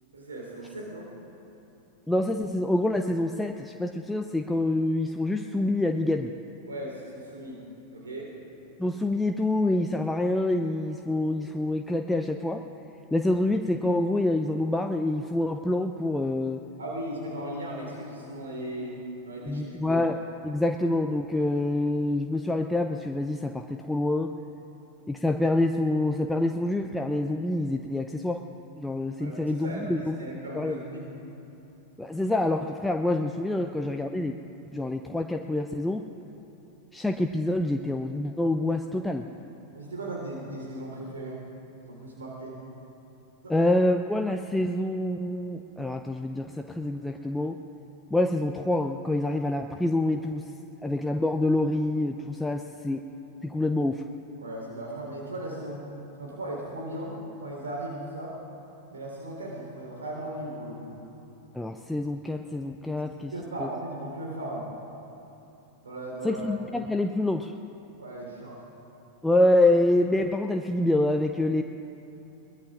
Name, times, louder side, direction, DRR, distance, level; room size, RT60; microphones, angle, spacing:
voice 1, 0.1-1.1 6.7-7.6 7.9-8.3 16.8-19.0 19.3-20.0 24.7-24.8 29.2-31.1 33.6-33.7 39.7-41.4 41.9-42.6 43.4-43.5 54.4-55.8 56.2-58.3 58.9-61.0 63.0-64.7 65.8-66.5 68.0-68.6, right 1 dB, 70° right, -2 dB, 3.6 m, -37 dB
voice 2, 2.1-6.3 8.8-12.6 13.1-16.6 19.5-20.2 20.4-24.3 25.1-28.4 28.7-30.2 30.5-30.8 32.0-34.4 34.7-36.1 36.9-39.3 43.5-47.6 48.1-50.5 50.8-53.0 53.4-54.0 61.5-63.3 63.6-63.7 66.2-67.5 69.2-71.6, left 1 dB, 5° left, 5 dB, 0.5 m, -26 dB
22.0 x 20.0 x 2.5 m, 2.9 s
figure-of-eight pair, 90°, 0 cm